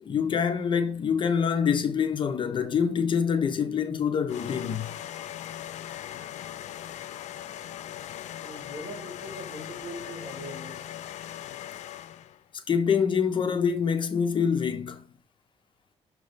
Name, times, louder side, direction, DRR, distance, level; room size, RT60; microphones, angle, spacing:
voice 1, 0.0-4.9 12.7-15.0, left 7 dB, 45° left, 0.7 m, -25 dB
sound 1, 4.3-12.4, left 11 dB, 90° left, 0.5 m, -39 dB
voice 2, 8.4-10.9, right 1 dB, 35° right, 3.2 m, -41 dB
6.4 x 3.2 x 5.1 m
wide cardioid pair, 170°, 12 cm